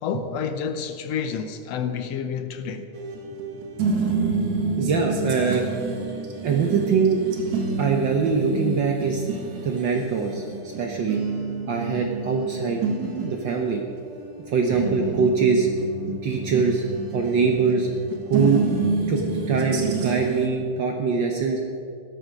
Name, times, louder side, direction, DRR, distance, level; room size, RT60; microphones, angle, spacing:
voice 1, 0.0-2.9, left 7 dB, 75° left, 1.6 m, -29 dB
sound 1, 2.9-20.5, right 4 dB, 70° right, 2.9 m, -29 dB
voice 2, 4.8-5.7 6.4-7.2 7.8-9.2 9.6-10.4 10.8-11.2 11.7-12.8 13.2-13.8 14.5-15.7 16.2-16.8 17.1-17.9 18.3-18.7 19.1-21.6, right 5 dB, 85° right, 1.0 m, -23 dB
15.5 x 13.0 x 5.2 m
omnidirectional pair, 3.5 m